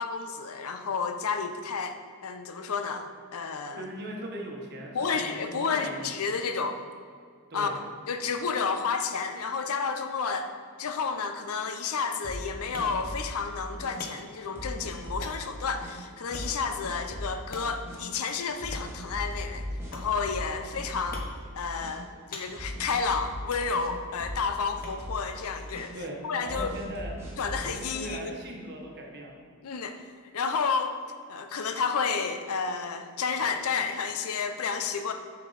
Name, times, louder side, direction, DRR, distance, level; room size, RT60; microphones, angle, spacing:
voice 1, 0.0-2.0 2.2-3.1 3.3-3.8 4.9-6.8 7.5-7.7 8.1-10.5 10.8-19.6 19.9-21.3 21.5-26.0 26.2-26.7 27.4-28.4 29.6-30.0 30.3-31.0 31.3-35.1, left 5 dB, 75° left, 7 dB, 0.5 m, -31 dB
voice 2, 3.8-6.2 7.5-7.8 25.9-27.2 27.8-29.4, right 1 dB, 50° right, 0 dB, 1.1 m, -39 dB
sound 1, 12.1-27.8, left 2 dB, 40° left, 0.8 m, -49 dB
sound 2, 12.2-13.3 13.8-13.9 14.6-15.3 15.8-15.9 16.3-16.6 16.8-17.4 17.9-18.0 18.6-20.5 20.8-21.5 21.8-22.0 22.6-23.9 24.2-24.5 24.7-25.2 25.7-25.9 26.5-27.8, equal, 10° right, 1.2 m, -38 dB
7.2 x 4.4 x 4.0 m, 2.1 s
head